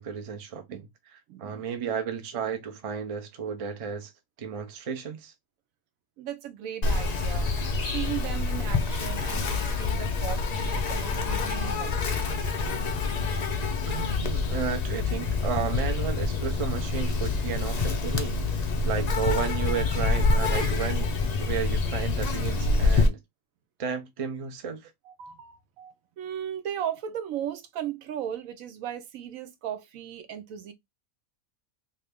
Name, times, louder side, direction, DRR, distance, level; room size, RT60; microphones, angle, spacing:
voice 1, 0.0-4.1 4.4-5.3 13.9-18.3 18.8-21.1 21.4-23.2 23.8-24.9, right 7 dB, 45° right, 0.4 m, -33 dB
voice 2, 1.3-1.7 6.2-7.5 7.8-12.3 25.0-30.7, right 10 dB, 85° right, 1.0 m, -36 dB
Insect, 6.8-23.1, left 3 dB, 65° left, 0.4 m, -27 dB
2.7 x 2.5 x 3.4 m
omnidirectional pair, 1.4 m